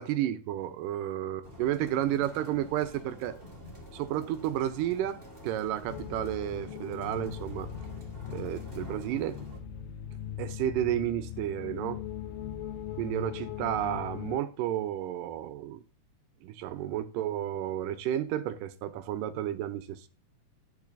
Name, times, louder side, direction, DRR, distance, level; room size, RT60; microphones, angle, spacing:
voice 1, 0.0-3.4 3.9-7.7 8.3-9.4 10.4-12.0 13.0-15.8 16.4-20.1, right 12 dB, 80° right, 2.3 m, -32 dB
sound 1, 1.4-9.6, equal, 20° right, 1.5 m, -48 dB
sound 2, 5.9-14.4, left 10 dB, 75° left, 2.3 m, -40 dB
10.5 x 6.5 x 2.6 m
omnidirectional pair, 3.9 m